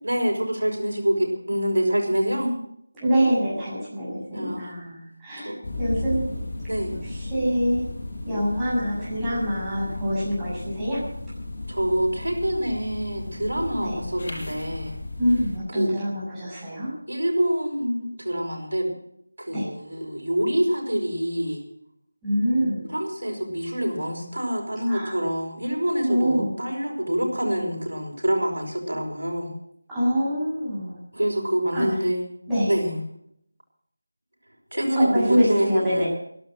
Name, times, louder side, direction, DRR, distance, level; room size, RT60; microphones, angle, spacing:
voice 1, 0.0-2.5 4.3-4.7 5.4-5.6 6.7-7.0 11.7-15.0 15.7-15.9 17.1-18.9 19.4-21.6 22.9-29.5 31.1-32.2 32.7-33.0 34.7-36.1, equal, 80° right, 1 dB, 6.6 m, -26 dB
voice 2, 3.0-5.5 5.8-6.2 7.3-7.8 8.3-11.1 13.8-14.0 15.2-16.9 19.5-19.7 22.2-22.9 24.9-25.1 26.1-26.5 29.9-30.9 31.7-31.9 32.5-32.7 35.0-36.1, equal, 10° right, -9 dB, 7.5 m, -25 dB
sound 1, 5.6-15.6, left 2 dB, 50° left, 7.5 m, -34 dB
14.0 x 12.5 x 8.0 m, 0.70 s
figure-of-eight pair, 165°, 0 cm